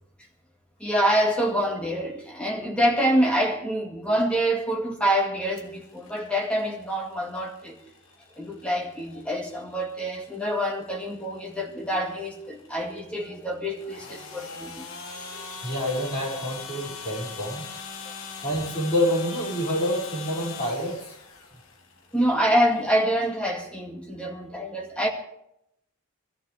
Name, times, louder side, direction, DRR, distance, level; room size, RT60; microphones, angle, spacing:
voice 1, 0.8-7.8 8.4-14.9 15.1-15.7 22.1-25.1, equal, 5° left, 2.1 m, -26 dB
sound 1, 5.6-23.0, left 5 dB, 70° left, 1.5 m, -42 dB
voice 2, 15.6-17.6 18.4-21.1, equal, 30° left, 5.9 m, -27 dB
22.0 x 14.0 x 3.5 m
head